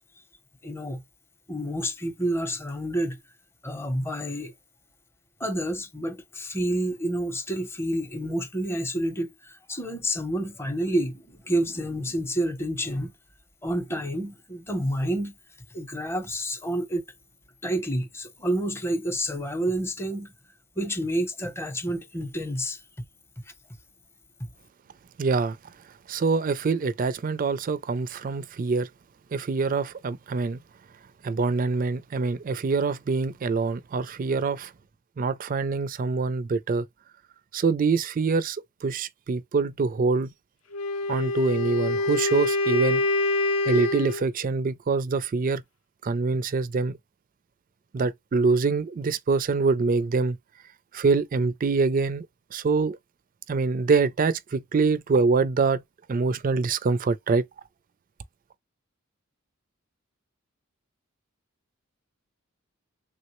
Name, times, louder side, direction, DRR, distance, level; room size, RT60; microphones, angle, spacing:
voice 1, 0.6-1.0 1.5-3.2 3.6-4.5 5.4-13.1 13.6-15.4 15.7-17.0 17.6-20.3 20.8-22.8, right 1 dB, 10° left, 0.6 m, -29 dB
voice 2, 25.2-25.6 26.1-28.9 29.3-30.6 31.2-34.7 35.2-36.8 37.5-40.3 41.1-43.1 43.7-45.6 46.0-47.0 47.9-50.4 50.9-52.3 52.5-53.0 53.5-55.8 56.1-57.4, right 4 dB, 40° right, 0.4 m, -25 dB
Wind instrument woodwind instrument, 40.7-44.2, left 2 dB, 75° left, 0.6 m, -25 dB
3.4 x 2.1 x 2.9 m
head